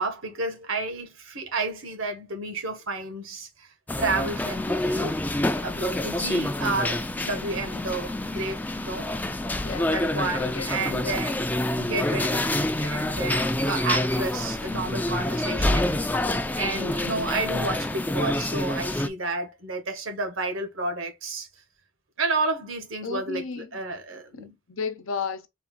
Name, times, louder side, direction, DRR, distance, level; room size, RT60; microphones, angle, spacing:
voice 1, 0.0-5.2 5.6-9.1 9.9-11.4 11.8-21.5 22.2-24.5, right 3 dB, 85° right, 1.4 m, -31 dB
sound 1, 3.9-19.1, left 1 dB, 10° left, 0.3 m, -27 dB
voice 2, 9.6-11.1 23.0-23.8 24.3-25.5, left 5 dB, 85° left, 0.8 m, -34 dB
4.1 x 2.5 x 3.7 m
head